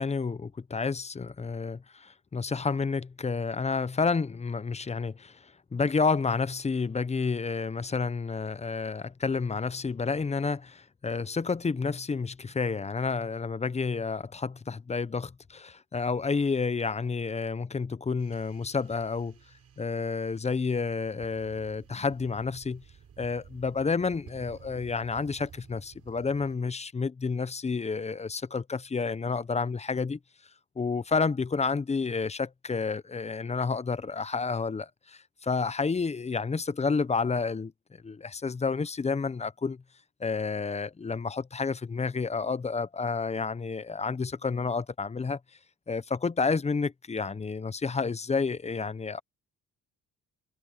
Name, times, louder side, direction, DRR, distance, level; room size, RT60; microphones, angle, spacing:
voice 1, 0.0-19.4 19.8-22.8 23.2-30.2 30.8-39.8 40.2-45.4 45.9-49.2, left 4 dB, 20° left, 0.7 m, -30 dB
sound 1, 18.2-26.6, right 7 dB, 55° right, 6.7 m, -53 dB
cardioid pair, 90°, 30 cm